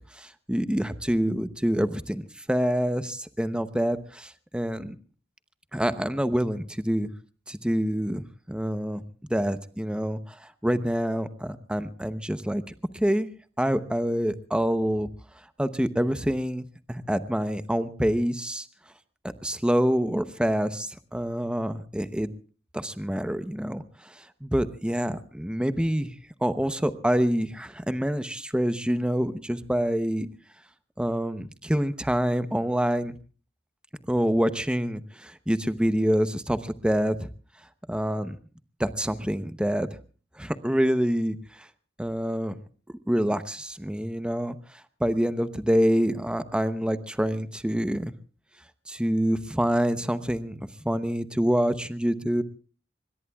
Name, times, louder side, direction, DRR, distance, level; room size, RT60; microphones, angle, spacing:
voice 1, 0.1-5.0 5.7-7.1 7.5-9.0 9.3-12.6 12.9-13.3 13.6-15.1 15.6-18.7 19.4-22.3 22.7-26.1 26.4-30.3 31.0-33.1 34.1-37.3 37.9-38.4 38.8-39.9 40.4-41.7 42.0-42.6 42.9-48.1 48.9-50.6 50.8-52.4, equal, 5° right, 11 dB, 0.8 m, -26 dB
26.0 x 22.5 x 2.3 m, 0.38 s
head